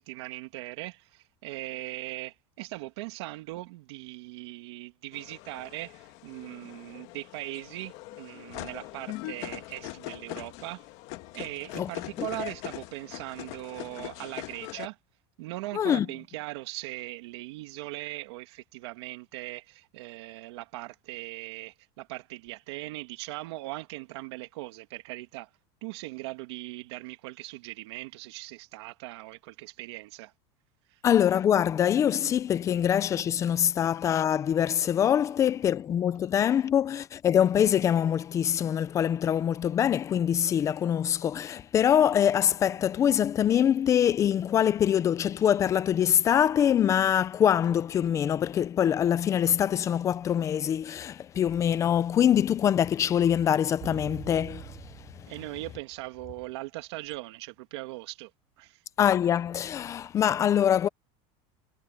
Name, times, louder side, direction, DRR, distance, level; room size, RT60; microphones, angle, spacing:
voice 1, 0.0-10.9 11.3-15.0 15.4-25.5 25.8-30.3 30.9-31.0 55.3-58.3 58.6-58.8, right 20 dB, 75° right, 2.4 m, -40 dB
sound 1, 5.1-14.9, left 19 dB, 50° left, 1.7 m, -41 dB
voice 2, 15.7-16.1 31.0-55.3 59.0-60.9, left 9 dB, 20° left, 0.6 m, -24 dB
sound 2, 53.8-56.0 56.3-56.4, right 15 dB, 40° right, 5.3 m, -45 dB
supercardioid pair, 165°, 14 cm